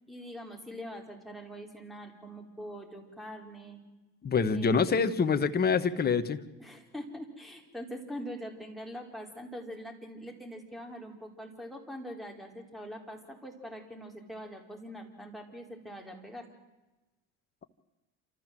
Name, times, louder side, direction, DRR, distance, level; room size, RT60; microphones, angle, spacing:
voice 1, 0.1-3.8 4.5-4.9 6.6-16.5, equal, ahead, 3 dB, 4.2 m, -43 dB
voice 2, 4.2-6.4, left 5 dB, 25° left, 9 dB, 1.3 m, -26 dB
28.0 x 14.0 x 7.6 m, 1.1 s
supercardioid pair, 95°, 37 cm